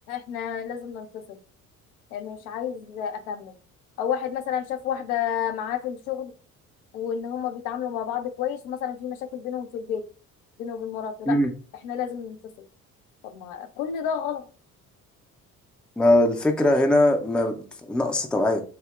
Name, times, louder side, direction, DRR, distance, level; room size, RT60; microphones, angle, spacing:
voice 1, 0.1-1.4 2.1-3.6 4.0-6.3 6.9-10.0 10.6-11.4 11.8-12.6 13.2-14.5, left 8 dB, 70° left, 0.6 m, -30 dB
voice 2, 16.0-18.6, left 1 dB, ahead, 0.4 m, -21 dB
5.3 x 2.0 x 2.4 m
figure-of-eight pair, 45°, 45 cm